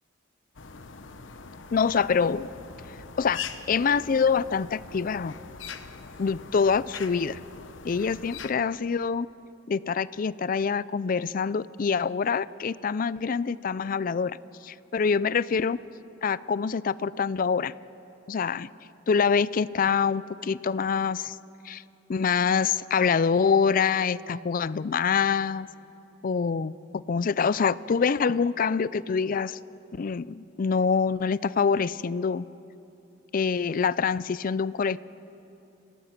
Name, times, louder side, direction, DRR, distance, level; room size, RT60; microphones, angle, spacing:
sound 1, 0.5-8.5, left 6 dB, 80° left, 0.9 m, -42 dB
voice 1, 1.7-2.5 3.2-3.4 3.7-5.3 6.2-7.4 7.8-9.3 9.7-14.4 14.6-15.8 16.2-17.7 18.3-18.7 19.1-21.4 21.6-21.8 22.1-25.7 26.2-29.6 29.9-32.4 33.3-35.0, left 6 dB, 45° left, 18 dB, 0.4 m, -25 dB
26.5 x 18.0 x 5.9 m, 2.9 s
head